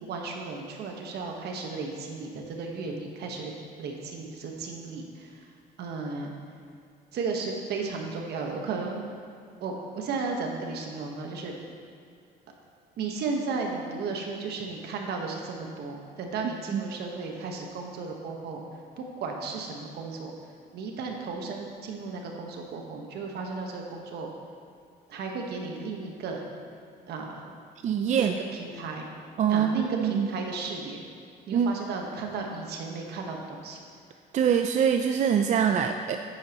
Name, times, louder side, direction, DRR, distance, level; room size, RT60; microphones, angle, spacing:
voice 1, 0.0-3.5 3.8-5.5 5.8-6.3 7.1-9.0 9.6-11.6 13.0-18.6 19.0-20.3 20.7-24.3 25.1-26.5 27.1-27.5 28.1-29.1 29.5-31.0 31.5-33.8, right 4 dB, 70° right, 1 dB, 1.3 m, -34 dB
voice 2, 27.8-28.4 29.4-30.3 31.5-31.7 34.3-36.2, right 7 dB, 45° right, 5 dB, 0.4 m, -24 dB
9.5 x 9.3 x 3.0 m, 2.4 s
cardioid pair, 110°, 18 cm